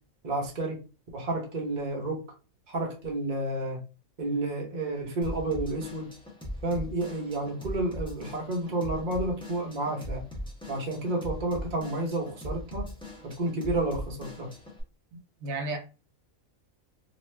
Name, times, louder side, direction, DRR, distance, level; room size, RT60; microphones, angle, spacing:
voice 1, 0.2-0.8 1.1-2.2 2.7-3.8 4.2-6.1 6.6-10.2 10.7-12.9 13.2-14.5, right 2 dB, 40° right, 0.9 m, -30 dB
Drum kit / Drum, 5.2-14.8, equal, 5° left, 0.6 m, -40 dB
voice 2, 15.1-15.8, right 2 dB, 80° right, 1.1 m, -34 dB
2.6 x 2.4 x 3.2 m
omnidirectional pair, 1.4 m